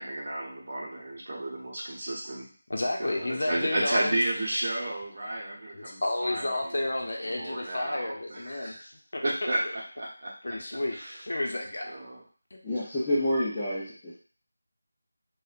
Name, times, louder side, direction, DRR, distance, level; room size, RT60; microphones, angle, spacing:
voice 1, 0.0-2.5 3.0-6.6 7.4-8.8 9.2-9.6 10.0-10.6 10.9-11.1 11.9-12.2, right 1 dB, 40° right, -4 dB, 0.8 m, -32 dB
voice 2, 2.7-4.2 5.7-9.7 10.4-11.0 11.3-11.9 12.5-12.6, left 1 dB, 60° left, 1 dB, 0.6 m, -31 dB
voice 3, 12.6-14.2, left 1 dB, 10° left, -11 dB, 0.4 m, -28 dB
2.8 x 2.1 x 2.4 m, 0.40 s
figure-of-eight pair, 175°, 0 cm